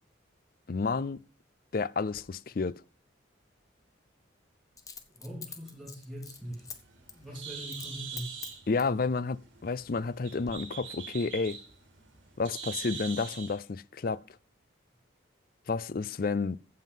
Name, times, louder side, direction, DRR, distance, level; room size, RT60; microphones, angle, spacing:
voice 1, 0.7-1.2 1.7-2.8 8.7-11.6 12.4-14.2 15.7-16.6, left 4 dB, 45° left, 0.4 m, -31 dB
Coin (dropping), 2.1-2.3 4.8-6.8 7.1-7.3 7.7-7.9 8.2-9.0 9.6-10.1 10.4-10.5, left 6 dB, 20° left, 1.0 m, -45 dB
voice 2, 5.1-6.6 7.1-8.4, equal, ahead, 3.4 m, -42 dB
Bird, 6.3-13.6, right 6 dB, 75° right, 3.8 m, -43 dB
15.0 x 5.7 x 5.4 m
head